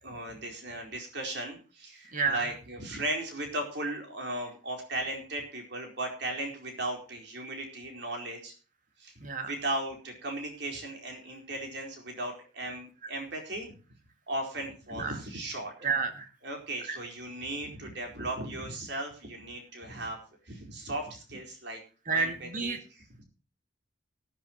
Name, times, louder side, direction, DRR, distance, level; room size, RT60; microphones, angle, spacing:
voice 1, 0.0-8.5 9.0-9.1 9.5-13.7 14.3-15.7 16.4-20.2 20.5-21.8 22.1-23.2, right 1 dB, 60° right, 2 dB, 4.5 m, -36 dB
voice 2, 2.1-2.5 9.2-9.5 15.0-15.2 15.8-16.3 16.9-17.0 22.1-22.8, right 5 dB, 40° right, 6 dB, 2.1 m, -30 dB
18.5 x 10.5 x 3.0 m, 0.36 s
head